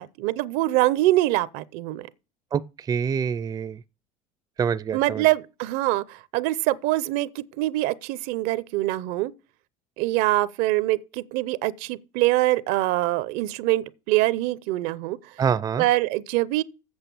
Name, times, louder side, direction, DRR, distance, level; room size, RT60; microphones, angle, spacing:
voice 1, 0.0-2.1 4.9-9.3 10.0-15.2 15.8-16.6, right 17 dB, 75° right, 0.6 m, -24 dB
voice 2, 2.5-3.8 4.6-5.3 15.4-15.9, right 7 dB, 25° right, 0.4 m, -26 dB
8.0 x 6.7 x 6.9 m
supercardioid pair, 110°, 16 cm